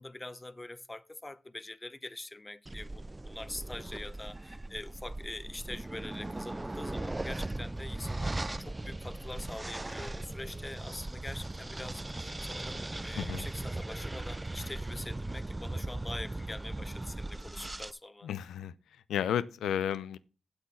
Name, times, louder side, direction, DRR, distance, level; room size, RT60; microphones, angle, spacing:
voice 1, 0.0-18.3, left 2 dB, 20° left, 0.6 m, -44 dB
sound 1, 2.7-17.9, right 2 dB, 20° right, 0.4 m, -38 dB
voice 2, 18.2-18.7 19.1-20.2, left 9 dB, 85° left, 0.5 m, -32 dB
7.9 x 6.4 x 7.1 m
cardioid pair, 60°, 0 cm